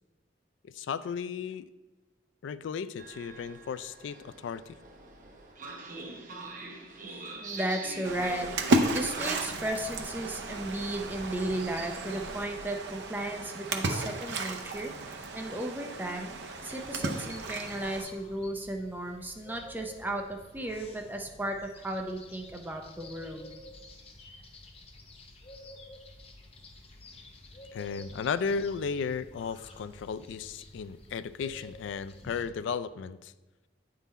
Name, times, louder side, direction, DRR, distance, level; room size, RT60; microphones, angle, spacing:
voice 1, 0.7-1.6 2.4-4.8 27.7-33.3, left 6 dB, 85° left, 15 dB, 0.3 m, -35 dB
Train, 3.0-9.4, right 3 dB, 45° right, 1.0 m, -44 dB
voice 2, 7.0-14.9 15.3-16.3 16.6-23.5, right 1 dB, 10° right, 3 dB, 0.5 m, -35 dB
Splash splatter, 8.0-18.0, right 2 dB, 70° right, 0.6 m, -33 dB
sound 1, 16.7-32.5, left 2 dB, 35° left, 0.7 m, -50 dB
9.1 x 3.8 x 4.1 m, 1.1 s
head